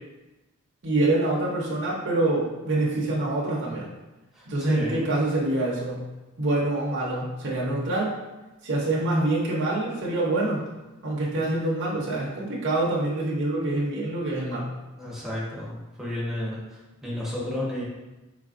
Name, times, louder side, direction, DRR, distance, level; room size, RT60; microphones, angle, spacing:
voice 1, 0.8-3.9 4.5-6.1 6.4-8.1 8.6-10.6 11.0-14.7, right 2 dB, 55° right, -5 dB, 0.8 m, -26 dB
voice 2, 4.7-5.1 15.0-16.6 17.0-17.8, left 1 dB, ahead, -7 dB, 1.0 m, -31 dB
3.9 x 3.3 x 2.5 m, 1.1 s
head